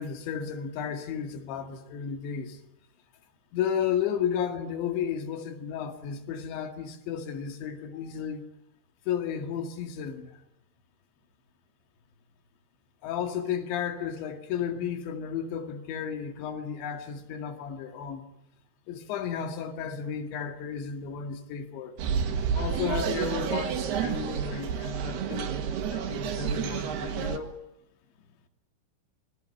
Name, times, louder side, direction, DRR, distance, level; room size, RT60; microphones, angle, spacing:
voice 1, 0.0-2.6 3.5-8.4 9.1-10.4 13.0-18.2 18.9-22.0 22.6-25.6 25.9-27.5, left 8 dB, 65° left, 4.2 m, -33 dB
sound 1, 22.0-27.4, right 7 dB, 60° right, 3.4 m, -30 dB
26.5 x 22.0 x 9.9 m
omnidirectional pair, 5.9 m